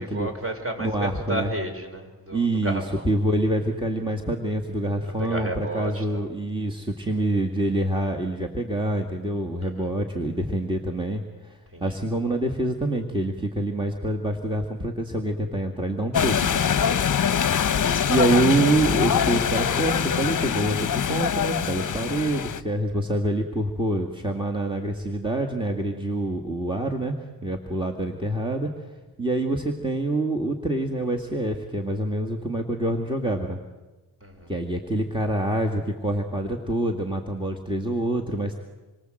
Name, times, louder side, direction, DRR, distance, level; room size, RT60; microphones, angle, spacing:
voice 1, 0.0-3.0 5.2-6.3 9.6-9.9 11.7-11.9 17.1-17.4 34.2-34.5, right 1 dB, 35° right, 4 dB, 5.0 m, -32 dB
voice 2, 0.8-1.5 2.3-16.8 18.1-27.1 27.4-28.7 29.2-33.6 34.5-38.6, right 1 dB, 15° right, 3 dB, 2.0 m, -26 dB
sound 1, 16.1-22.6, left 8 dB, 55° left, 0.8 m, -23 dB
27.0 x 24.0 x 7.8 m, 1.2 s
wide cardioid pair, 105°, 38 cm